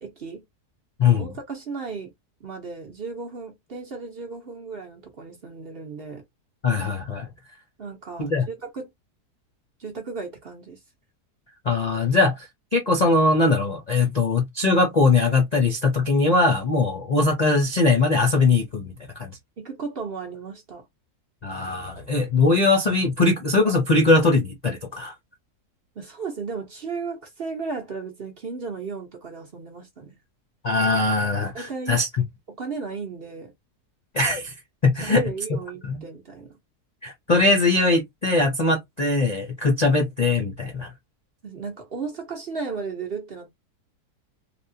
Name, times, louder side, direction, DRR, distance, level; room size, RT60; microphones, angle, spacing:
voice 1, 0.0-0.4 1.2-2.1 2.4-6.2 7.8-8.9 9.8-10.8 19.6-20.8 26.0-30.2 31.5-32.0 32.5-33.5 35.0-36.6 41.4-43.5, right 4 dB, 45° right, 0.9 m, -35 dB
voice 2, 6.6-7.3 8.2-8.4 11.6-18.9 19.2-19.4 21.4-25.1 30.6-32.1 34.1-34.5 34.8-35.2 35.8-36.0 37.0-40.9, left 3 dB, 45° left, 0.5 m, -21 dB
3.4 x 2.3 x 2.6 m
omnidirectional pair, 1.7 m